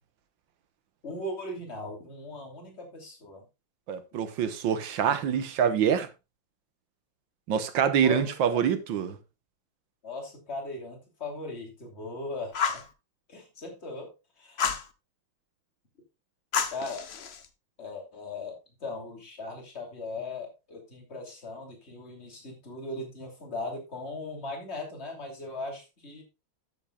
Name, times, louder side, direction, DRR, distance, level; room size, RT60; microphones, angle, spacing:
voice 1, 1.0-3.4 8.0-8.6 10.0-12.8 13.3-14.1 14.4-14.7 16.7-17.1 17.8-26.2, left 2 dB, 30° left, 3.1 m, -38 dB
voice 2, 3.9-6.1 7.5-9.2, right 8 dB, 70° right, 1.7 m, -25 dB
Fire, 12.5-12.9 14.6-14.9 16.5-17.4, left 6 dB, 50° left, 0.7 m, -29 dB
13.0 x 7.8 x 2.3 m
omnidirectional pair, 2.2 m